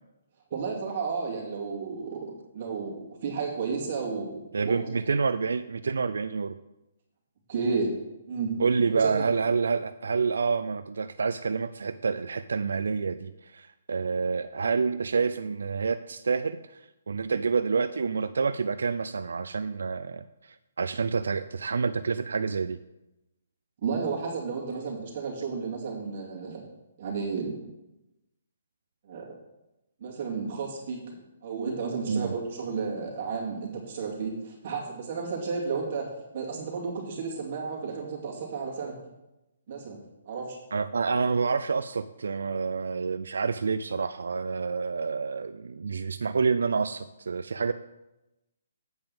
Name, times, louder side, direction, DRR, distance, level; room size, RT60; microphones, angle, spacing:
voice 1, 0.5-4.4 4.6-4.9 7.5-7.9 8.3-8.5 9.0-9.3 23.8-26.6 27.0-27.6 29.0-29.3 30.0-31.0 31.4-36.1 36.3-39.0 39.7-40.0 40.3-40.6, right 5 dB, 40° right, -2 dB, 2.5 m, -32 dB
voice 2, 4.5-6.6 8.6-22.8 32.1-32.4 40.7-47.7, right 5 dB, 85° right, 12 dB, 0.4 m, -28 dB
8.0 x 5.3 x 7.0 m, 0.97 s
hypercardioid pair, 170°, 0 cm